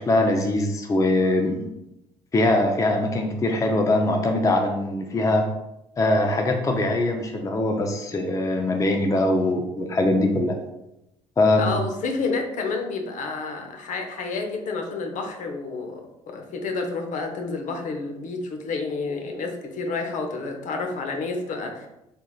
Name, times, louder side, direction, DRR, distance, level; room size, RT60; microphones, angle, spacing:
voice 1, 0.0-1.7 2.3-5.5 6.0-10.6 11.4-11.8, left 2 dB, 20° left, 3 dB, 0.5 m, -22 dB
voice 2, 11.6-16.0 16.3-21.9, left 3 dB, 55° left, 3 dB, 0.7 m, -29 dB
3.6 x 3.0 x 2.3 m, 0.88 s
hypercardioid pair, 65°, 15 cm